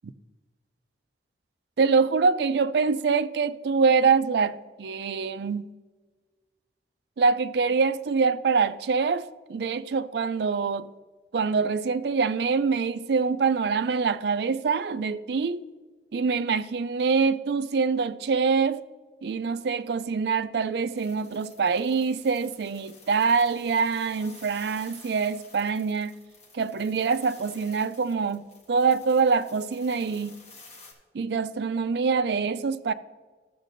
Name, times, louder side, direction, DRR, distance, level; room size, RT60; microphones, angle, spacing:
voice 1, 1.8-5.7 7.2-10.9 11.3-15.7 16.1-18.8 19.2-26.1 26.5-30.3 31.1-32.9, right 5 dB, 65° right, 0.4 m, -25 dB
sound 1, 21.0-30.9, left 3 dB, 40° left, 1.4 m, -52 dB
13.0 x 7.4 x 2.6 m
head